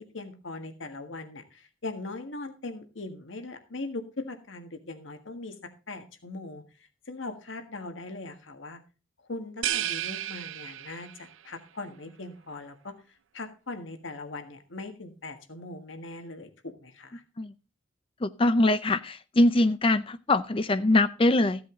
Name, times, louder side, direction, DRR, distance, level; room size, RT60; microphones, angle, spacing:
voice 1, 0.0-5.6 5.9-6.6 7.1-8.8 9.3-12.9 13.3-17.2, left 2 dB, 80° left, 7 dB, 1.6 m, -40 dB
sound 1, 9.6-11.3, right 12 dB, 90° right, 0.5 m, -32 dB
voice 2, 18.2-21.6, left 2 dB, 30° left, 13 dB, 0.5 m, -23 dB
14.5 x 7.8 x 3.8 m, 0.33 s
head